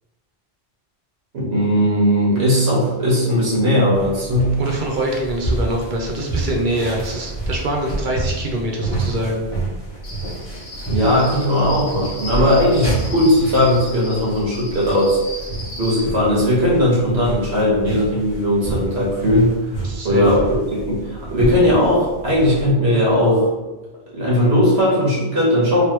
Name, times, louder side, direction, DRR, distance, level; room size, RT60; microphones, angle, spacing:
voice 1, 1.3-4.5 10.9-15.2 15.8-19.5 20.0-23.5 24.1-25.8, left 1 dB, 80° right, -5 dB, 1.6 m, -18 dB
sound 1, 3.9-22.7, right 2 dB, 35° left, 1.0 m, -29 dB
voice 2, 4.6-9.4 19.8-20.3, right 1 dB, 55° right, 0 dB, 0.7 m, -24 dB
Cricket, 10.0-16.0, left 1 dB, 65° left, 1.1 m, -35 dB
3.2 x 3.0 x 3.0 m, 1.1 s
omnidirectional pair, 1.1 m